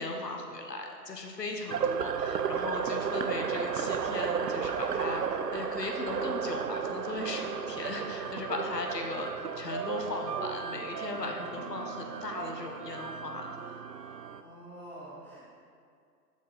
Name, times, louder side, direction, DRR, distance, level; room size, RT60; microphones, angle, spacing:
voice 1, 0.0-9.3 9.6-13.8, left 2 dB, 80° left, 2 dB, 1.0 m, -37 dB
sound 1, 1.7-14.4, right 7 dB, 75° right, 0.5 m, -34 dB
voice 2, 14.3-15.4, right 1 dB, 5° left, -10 dB, 1.3 m, -46 dB
6.7 x 4.3 x 4.9 m, 2.3 s
figure-of-eight pair, 125°, 48 cm